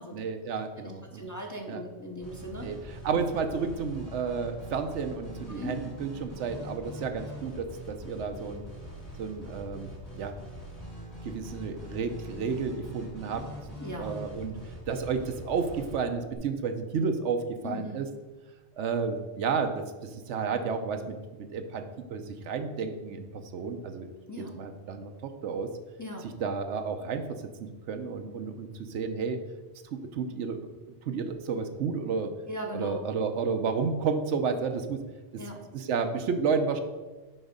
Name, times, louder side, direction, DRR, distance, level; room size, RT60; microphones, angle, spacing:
voice 1, 0.1-1.3 1.7-1.8 2.6-2.8 3.0-8.6 9.2-10.4 11.2-13.5 14.0-14.6 14.9-18.1 18.8-21.8 22.1-24.1 24.4-25.7 26.4-29.4 29.9-30.6 30.9-32.3 32.7-35.0 35.7-36.8, right 5 dB, 80° right, 7 dB, 1.0 m, -31 dB
voice 2, 0.8-2.7 5.5-5.7 13.8-14.2 17.6-18.0 24.3-24.5 26.0-26.3 32.5-33.1 35.4-35.6, left 1 dB, 20° left, 1 dB, 0.6 m, -39 dB
sound 1, 2.2-16.4, equal, 65° left, 2.6 m, -43 dB
6.1 x 5.1 x 5.1 m, 1.2 s
omnidirectional pair, 1.2 m